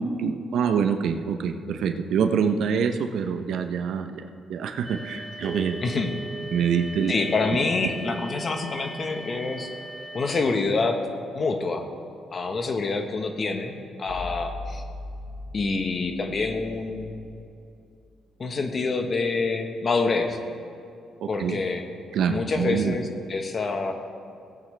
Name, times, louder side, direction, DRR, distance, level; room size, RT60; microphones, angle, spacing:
voice 1, 0.0-4.2 4.5-5.8 6.5-7.2 21.2-21.6 22.1-23.0, right 7 dB, 75° right, 7 dB, 0.7 m, -25 dB
sound 1, 4.8-10.4, equal, 15° right, 1.1 m, -40 dB
sound 2, 5.4-13.7, right 2 dB, 55° right, 1.7 m, -44 dB
voice 2, 7.1-9.7 10.1-11.0 11.3-11.9 12.3-14.8 15.5-17.2 18.4-20.4 21.3-21.8 22.3-23.9, left 3 dB, 40° left, 5 dB, 1.2 m, -26 dB
sound 3, 14.1-17.7 18.0-18.1, left 2 dB, 80° left, 1.3 m, -39 dB
17.5 x 8.5 x 3.4 m, 2.5 s
cardioid pair, 90°, 0 cm